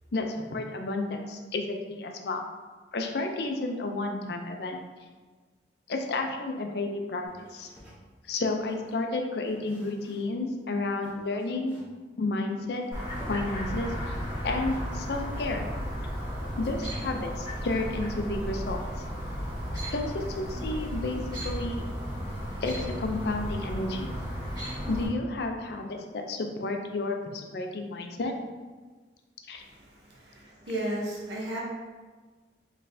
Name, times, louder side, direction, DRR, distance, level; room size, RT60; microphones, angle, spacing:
voice 1, 0.1-2.4 2.9-4.8 5.9-7.7 8.3-11.8 12.2-12.8 13.3-13.9 14.4-15.7 16.6-18.8 19.9-21.9 22.6-24.1 24.9-28.3 29.5-29.6, left 2 dB, 65° left, 4 dB, 0.4 m, -31 dB
sound 1, 7.2-9.0 9.5-10.4 10.7-10.8 11.0-12.0 12.5-14.4 14.7-15.8, equal, 5° right, 0.9 m, -52 dB
Chirp tweet, 12.9-25.1, equal, 25° right, 1.4 m, -34 dB
voice 2, 29.6-31.6, right 1 dB, 70° right, -3 dB, 0.8 m, -35 dB
4.0 x 3.2 x 2.6 m, 1.4 s
head